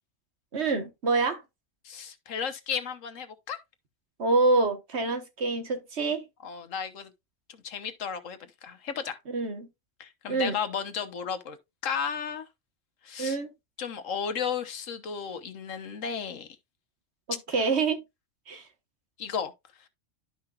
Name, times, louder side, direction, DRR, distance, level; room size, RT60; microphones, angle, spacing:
voice 1, 0.5-1.4 4.2-6.2 9.3-9.7 10.3-10.6 13.2-13.5 17.3-18.0 18.5-18.6, right 3 dB, 60° right, 1.6 m, -26 dB
voice 2, 1.8-3.6 6.4-7.1 7.6-9.2 10.0-11.6 11.8-12.5 13.0-13.4 13.8-16.5 19.2-19.5, left 7 dB, 85° left, 1.4 m, -34 dB
11.5 x 5.8 x 2.4 m
omnidirectional pair, 1.3 m